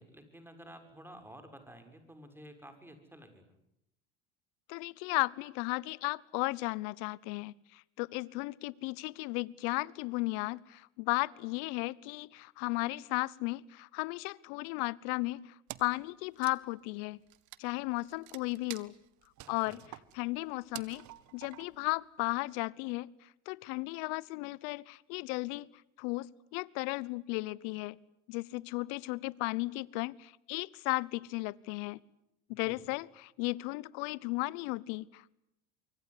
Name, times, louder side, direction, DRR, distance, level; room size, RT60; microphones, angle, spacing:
voice 1, 0.0-3.4 19.4-19.8 32.5-32.8, right 1 dB, 5° right, 6.7 m, -52 dB
voice 2, 4.7-15.5 15.8-17.2 17.6-18.9 19.5-19.8 20.1-21.1 21.3-23.1 23.5-25.7 26.0-28.0 28.3-32.0 32.5-35.3, left 24 dB, 65° left, 1.0 m, -35 dB
Wood, 15.7-16.0 16.3-21.9, right 16 dB, 55° right, 1.7 m, -49 dB
25.0 x 24.0 x 9.9 m
hypercardioid pair, 80°, 35 cm